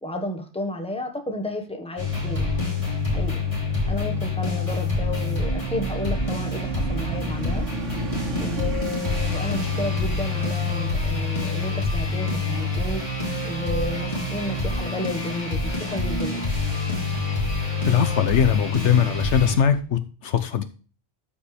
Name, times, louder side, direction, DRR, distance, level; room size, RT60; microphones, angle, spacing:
voice 1, 0.0-2.5 3.1-3.4 3.9-7.6 8.4-13.0 13.4-16.4, left 1 dB, 5° left, 3 dB, 1.3 m, -32 dB
sound 1, 2.0-19.5, left 3 dB, 25° left, 3.4 m, -26 dB
sound 2, 2.0-19.8, right 3 dB, 85° right, 1.5 m, -38 dB
voice 2, 17.9-20.6, left 8 dB, 70° left, 10 dB, 1.0 m, -21 dB
13.0 x 5.2 x 3.3 m, 0.37 s
omnidirectional pair, 1.2 m